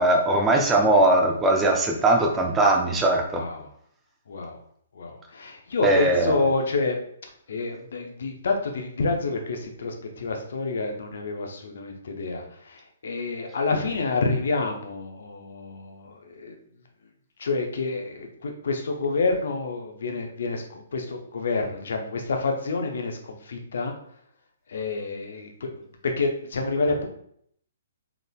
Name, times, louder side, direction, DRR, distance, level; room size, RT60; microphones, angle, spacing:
voice 1, 0.0-3.4 5.8-6.4, right 2 dB, 15° right, 2 dB, 0.6 m, -20 dB
voice 2, 3.3-3.7 4.3-4.6 4.9-7.0 7.5-16.6 17.4-23.9 24.7-27.1, left 3 dB, 60° left, 3 dB, 0.7 m, -28 dB
3.8 x 3.5 x 2.3 m, 0.67 s
figure-of-eight pair, 125°, 0 cm